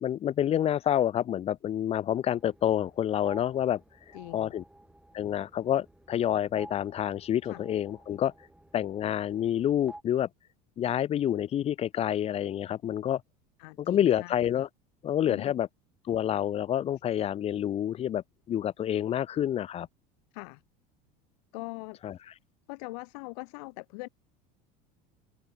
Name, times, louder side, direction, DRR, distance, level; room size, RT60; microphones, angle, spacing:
voice 1, 0.0-3.8 4.3-4.6 5.1-8.3 8.7-10.3 10.8-13.2 13.8-14.7 15.0-15.7 16.1-19.9 22.0-22.1, left 10 dB, 30° left, 0.5 m, -28 dB
sound 1, 2.3-10.0, right 1 dB, 5° right, 8.0 m, -53 dB
voice 2, 4.1-4.6 7.4-7.6 13.6-14.4 15.3-15.5 20.3-20.6 21.5-22.0 22.7-24.1, left 30 dB, 75° left, 1.0 m, -41 dB
supercardioid pair, 120°, 20 cm